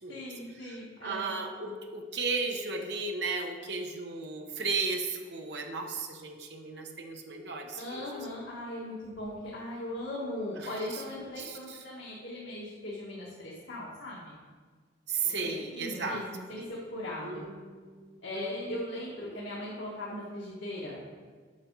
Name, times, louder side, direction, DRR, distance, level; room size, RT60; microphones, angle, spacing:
voice 1, 0.1-1.4 7.8-14.3 15.4-17.4 18.2-21.0, left 1 dB, 90° left, -6 dB, 1.6 m, -39 dB
voice 2, 1.0-8.3 10.6-11.0 11.4-11.6 15.1-16.2 16.6-16.7 17.2-18.8 19.2-19.3, right 4 dB, 60° right, 3 dB, 1.0 m, -35 dB
8.5 x 5.8 x 4.7 m, 1.5 s
head